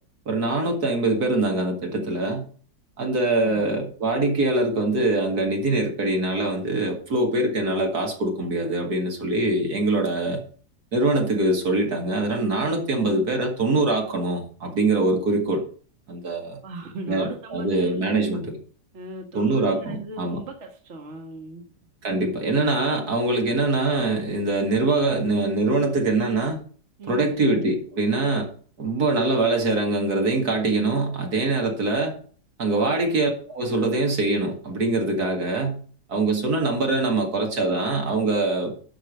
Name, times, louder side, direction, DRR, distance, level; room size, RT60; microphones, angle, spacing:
voice 1, 0.3-2.4 3.0-10.4 10.9-15.7 16.1-16.6 17.1-18.6 19.3-20.4 22.0-26.6 27.1-28.5 28.8-32.1 32.6-35.8 36.1-38.7, right 2 dB, 60° right, 2 dB, 2.4 m, -23 dB
voice 2, 3.4-3.7 13.0-13.1 16.6-18.2 18.9-21.6 27.0-27.3, right 2 dB, 40° right, 3 dB, 1.8 m, -38 dB
11.5 x 5.0 x 6.6 m, 0.44 s
omnidirectional pair, 1.9 m